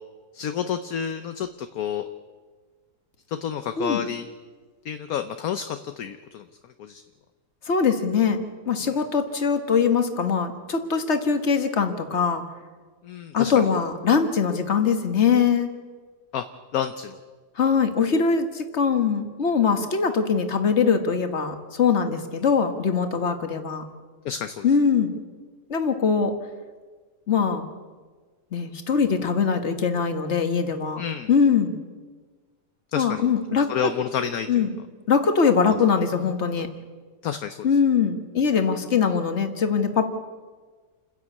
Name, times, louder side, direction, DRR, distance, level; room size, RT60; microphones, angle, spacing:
voice 1, 0.3-2.1 3.3-4.2 4.8-6.5 6.8-7.0 13.0-13.5 16.3-16.4 16.7-17.2 24.2-24.7 31.0-31.3 32.9-33.2 33.7-34.6 37.2-37.7, left 8 dB, 65° left, 9 dB, 1.2 m, -29 dB
voice 2, 7.6-8.4 8.7-12.4 13.3-15.7 17.6-23.8 24.6-25.1 25.7-26.3 27.3-27.7 28.5-31.0 31.3-31.7 32.9-33.9 34.5-34.7 35.1-36.7 37.6-40.1, left 6 dB, 45° left, 7 dB, 1.8 m, -22 dB
29.0 x 10.5 x 8.4 m, 1.4 s
omnidirectional pair, 1.7 m